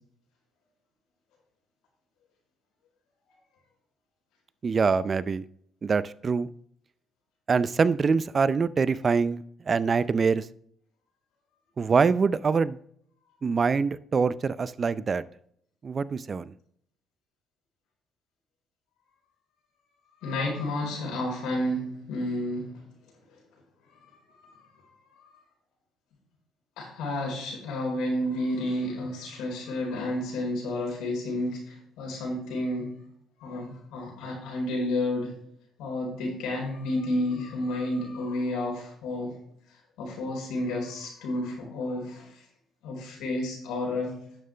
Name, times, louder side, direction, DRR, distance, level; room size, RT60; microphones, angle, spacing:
voice 1, 4.6-5.4 5.8-6.5 7.5-10.5 11.8-12.8 13.4-15.2 15.8-16.5, right 5 dB, 40° right, 0.5 m, -24 dB
voice 2, 20.2-22.9 23.3-23.4 24.0-24.8 25.1-25.3 26.8-33.0 33.4-35.3 35.8-39.4 39.7-42.5 42.8-44.2, left 1 dB, 85° left, 4.4 m, -31 dB
11.0 x 7.5 x 3.4 m
supercardioid pair, 75°, 0 cm